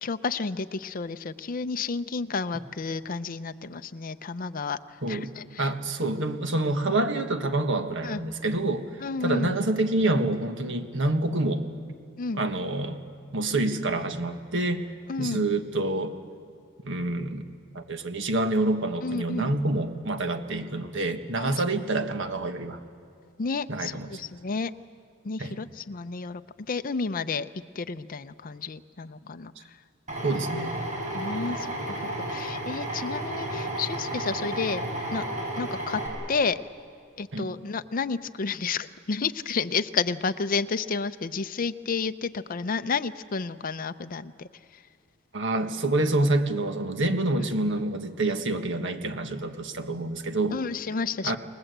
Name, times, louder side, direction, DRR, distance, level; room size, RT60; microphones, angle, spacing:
voice 1, 0.0-4.8 5.1-5.7 8.0-8.2 9.0-9.5 12.2-12.4 15.1-15.4 19.0-19.5 21.4-21.6 23.4-24.7 25.2-26.4 26.7-27.5 27.8-29.5 31.1-34.8 35.1-35.2 35.6-36.0 36.3-36.6 37.2-44.8 47.4-47.5 50.5-51.4, left 4 dB, 40° left, 10 dB, 0.6 m, -31 dB
voice 2, 5.6-8.9 9.2-11.6 12.3-13.0 13.3-14.9 15.2-16.1 16.8-17.4 17.7-22.8 23.7-24.1 25.4-25.6 30.2-30.8 37.3-37.5 45.3-50.6 51.2-51.4, right 2 dB, 60° right, 7 dB, 1.6 m, -27 dB
Drill, 30.1-36.1, right 1 dB, 35° right, 6.9 m, -32 dB
29.5 x 19.5 x 8.0 m, 2.4 s
head